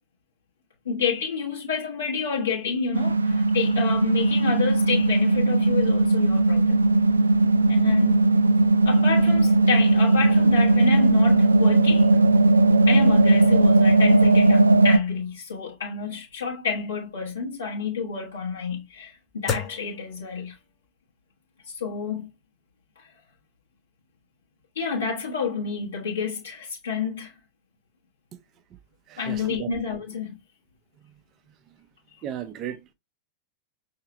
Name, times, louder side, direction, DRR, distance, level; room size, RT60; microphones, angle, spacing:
voice 1, 0.8-6.8 7.7-8.2 8.8-12.1 12.9-19.2 19.4-20.6 21.6-22.3 23.0-23.1 24.7-27.3 29.2-30.4, left 5 dB, 70° left, 1.1 m, -29 dB
sound 1, 2.9-15.0, right 2 dB, 75° right, 0.3 m, -18 dB
sound 2, 14.2-20.9, left 6 dB, 30° left, 0.8 m, -39 dB
voice 2, 29.1-29.7 31.0-31.2 31.5-31.9 32.2-32.9, right 10 dB, 35° right, 0.6 m, -37 dB
5.7 x 2.8 x 2.9 m
figure-of-eight pair, 90°, 0 cm